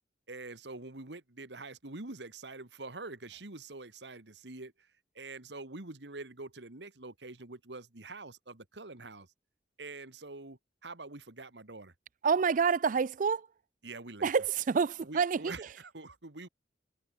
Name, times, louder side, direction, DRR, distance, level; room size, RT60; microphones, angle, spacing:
voice 1, 0.3-4.9 5.1-9.3 9.8-11.9 13.8-14.3 15.0-16.5, right 3 dB, 80° right, 2.2 m, -45 dB
voice 2, 12.2-13.5 14.2-15.5, right 6 dB, 50° right, 0.4 m, -27 dB
head